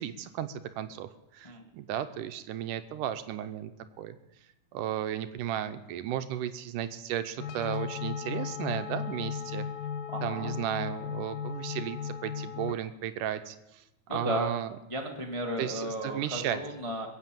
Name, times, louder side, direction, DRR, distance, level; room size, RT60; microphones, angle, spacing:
voice 1, 0.0-3.7 4.0-4.2 4.7-9.7 10.2-13.8 14.1-14.7 15.6-16.6, right 11 dB, 80° right, 10 dB, 2.2 m, -34 dB
sound 1, 7.4-12.7, left 7 dB, 85° left, 2.6 m, -36 dB
voice 2, 10.1-10.5 14.1-14.5 14.9-17.1, equal, 45° left, 1 dB, 0.4 m, -34 dB
22.0 x 8.5 x 7.5 m, 0.94 s
omnidirectional pair, 3.9 m